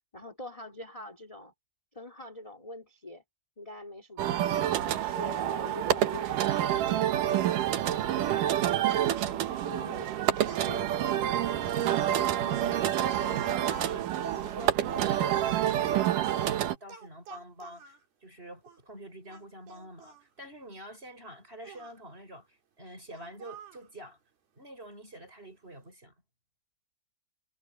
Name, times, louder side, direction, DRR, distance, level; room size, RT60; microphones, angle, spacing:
voice 1, 0.1-1.5 1.9-3.2 3.6-4.4 4.8-7.6 7.9-11.6, left 1 dB, 10° left, 3.0 m, -44 dB
sound 1, 4.2-16.8, right 11 dB, 65° right, 2.6 m, -28 dB
Speech, 10.4-18.0 18.6-18.8 19.3-20.2 21.6-22.0 23.1-23.9, right 5 dB, 90° right, 6.0 m, -47 dB
voice 2, 12.4-18.0 18.2-24.2 24.6-26.1, right 1 dB, 15° right, 5.3 m, -47 dB
omnidirectional pair, 4.3 m